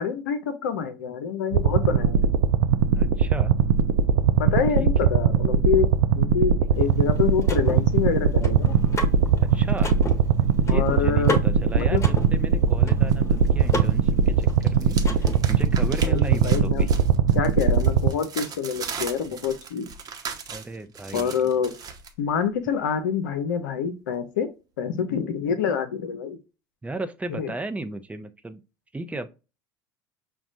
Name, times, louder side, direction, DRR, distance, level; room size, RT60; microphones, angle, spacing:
voice 1, 0.0-2.2 4.4-5.9 6.2-8.8 10.7-11.4 11.7-12.0 16.0-16.9 17.3-19.9 21.1-21.7 22.2-24.5 24.8-26.4 27.3-27.5, left 7 dB, 75° left, 0.6 m, -26 dB
sound 1, 1.5-18.1, right 6 dB, 70° right, 0.4 m, -21 dB
voice 2, 2.9-3.7 4.8-4.9 6.6-6.9 9.4-9.9 10.6-16.9 20.5-21.4 26.8-28.6 28.9-29.3, right 2 dB, 15° right, 0.6 m, -35 dB
Car / Mechanisms, 6.7-15.7, left 1 dB, 25° left, 1.1 m, -35 dB
sound 2, 13.1-14.0 14.3-22.1, right 5 dB, 35° right, 0.9 m, -38 dB
5.9 x 2.3 x 2.5 m
hypercardioid pair, 70°, 10 cm